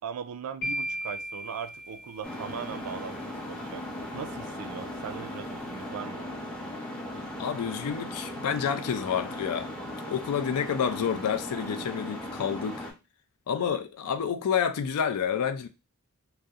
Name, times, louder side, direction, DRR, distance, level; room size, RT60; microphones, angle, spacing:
voice 1, 0.0-3.8 4.1-6.3, right 7 dB, 75° right, 0.3 m, -39 dB
sound 1, 0.6-2.7, equal, 50° left, 0.8 m, -36 dB
sound 2, 2.2-12.9, left 1 dB, 5° left, 0.5 m, -38 dB
voice 2, 7.4-9.7 10.1-12.9 13.5-15.7, left 7 dB, 85° left, 0.4 m, -29 dB
2.7 x 2.0 x 2.3 m
head